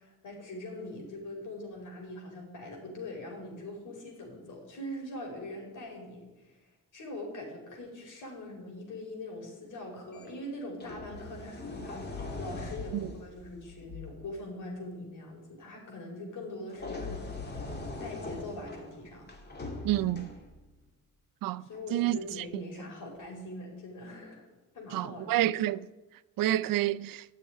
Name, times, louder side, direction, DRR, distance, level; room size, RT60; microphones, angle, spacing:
voice 1, 0.0-17.5 18.0-19.3 21.6-24.5 24.7-25.3, left 1 dB, 65° left, 4.9 m, -42 dB
sound 1, 10.1-10.3 10.8-14.3 16.7-20.7 21.7-21.9, left 3 dB, 30° left, 2.2 m, -41 dB
voice 2, 19.8-20.3 21.4-21.6 21.9-22.2 22.5-22.6 24.9-25.9 26.4-27.2, right 14 dB, 90° right, 0.6 m, -28 dB
15.0 x 6.9 x 9.8 m
cardioid pair, 150°, 33 cm